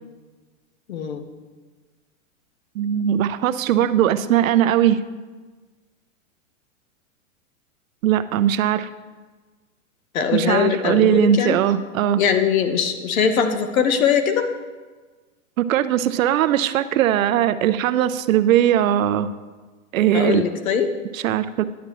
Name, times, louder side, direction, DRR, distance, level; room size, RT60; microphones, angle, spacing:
voice 1, 0.9-1.3 10.1-11.6 12.1-14.5 20.1-20.9, left 7 dB, 80° left, 8 dB, 1.0 m, -21 dB
voice 2, 2.8-5.0 8.0-8.9 10.3-12.2 15.6-19.3 19.9-20.4 21.1-21.6, right 11 dB, 75° right, 13 dB, 0.6 m, -19 dB
10.5 x 8.4 x 3.0 m, 1.3 s
hypercardioid pair, 135°, 41 cm